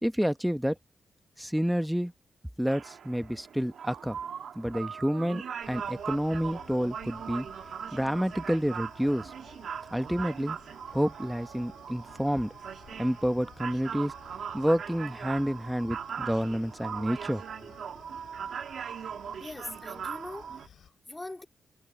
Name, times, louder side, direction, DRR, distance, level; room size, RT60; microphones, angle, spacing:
voice 1, 0.0-0.8 1.4-2.1 2.6-4.2 4.5-7.5 7.9-9.3 9.9-10.6 10.9-12.6 13.0-14.1 14.5-17.7, equal, ahead, 0.9 m, -29 dB
sound 1, 2.7-20.7, right 7 dB, 65° right, 1.7 m, -40 dB
sound 2, 5.6-20.9, left 9 dB, 90° left, 7.2 m, -56 dB
voice 2, 19.4-21.4, left 2 dB, 15° left, 2.2 m, -42 dB
wide cardioid pair, 160°, 0 cm